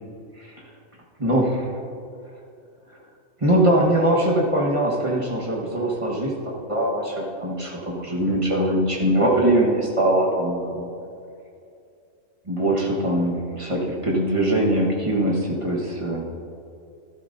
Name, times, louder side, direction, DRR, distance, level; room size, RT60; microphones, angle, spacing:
voice 1, 1.2-1.7 3.4-10.9 12.5-16.2, right 1 dB, 25° right, -2 dB, 1.3 m, -22 dB
12.5 x 12.0 x 2.7 m, 2.5 s
omnidirectional pair, 1.3 m